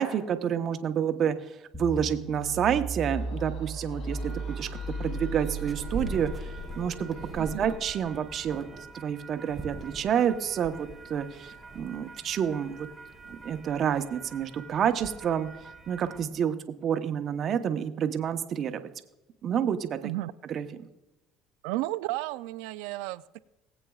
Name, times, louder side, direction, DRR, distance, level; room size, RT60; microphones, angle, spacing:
voice 1, 0.0-4.7 5.0-8.6 8.9-12.9 13.3-15.5 15.9-16.6 16.8-18.8 19.4-20.1 20.5-20.6, right 8 dB, 50° right, 8 dB, 0.9 m, -29 dB
sound 1, 1.7-8.0, right 2 dB, 10° left, 2.0 m, -36 dB
sound 2, 2.9-7.8, left 5 dB, 65° left, 1.2 m, -49 dB
sound 3, 4.1-16.3, right 3 dB, 15° right, 0.9 m, -43 dB
voice 2, 7.4-7.7 20.0-20.3 21.6-23.4, right 17 dB, 85° right, 16 dB, 0.4 m, -33 dB
19.5 x 8.2 x 2.4 m, 0.97 s
supercardioid pair, 100°, 0 cm